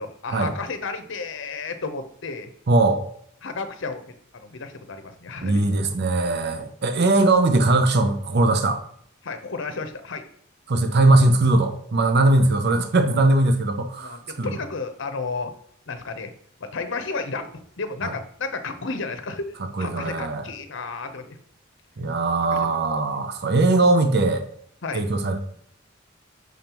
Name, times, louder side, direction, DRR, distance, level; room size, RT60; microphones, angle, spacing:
voice 1, 0.0-2.5 3.4-5.7 9.2-10.2 14.0-15.5 15.9-16.3 16.6-19.4 19.8-21.4 22.5-22.6 22.9-23.0 24.8-25.1, left 4 dB, 65° left, 8 dB, 0.8 m, -32 dB
voice 2, 2.7-3.0 5.4-8.8 10.7-14.6 19.8-20.5 22.0-24.5 24.9-25.4, right 2 dB, 55° right, 7 dB, 0.6 m, -20 dB
6.3 x 5.2 x 3.0 m, 0.65 s
head